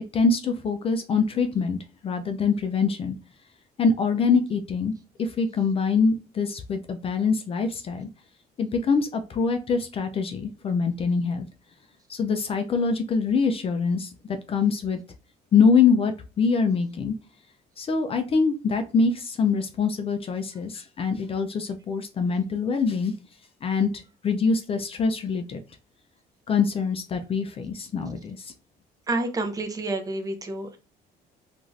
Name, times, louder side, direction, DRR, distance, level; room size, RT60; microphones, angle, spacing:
voice 1, 0.1-1.8 2.0-3.1 3.8-4.9 5.2-8.1 8.6-11.5 12.1-14.1 14.5-15.0 15.5-17.1 17.8-23.1 23.6-23.9 24.2-25.6 26.5-28.5, left 5 dB, 35° left, 7 dB, 0.3 m, -24 dB
voice 2, 29.1-30.8, right 2 dB, 20° right, 4 dB, 0.6 m, -29 dB
2.5 x 2.4 x 3.0 m, 0.32 s
cardioid pair, 110°, 17 cm